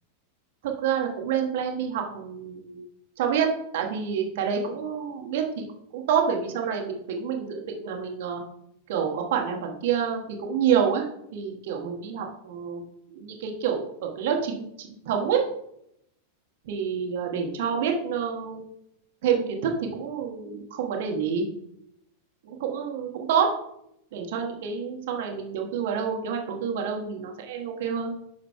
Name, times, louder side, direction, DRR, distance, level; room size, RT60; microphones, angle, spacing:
voice 1, 0.6-2.8 3.2-5.6 5.9-8.4 8.9-12.8 13.1-15.4 16.6-18.7 19.2-21.5 22.4-23.5 24.1-28.1, right 7 dB, 55° right, 2 dB, 1.4 m, -28 dB
9.7 x 6.7 x 2.3 m, 0.76 s
figure-of-eight pair, 90°, 0 cm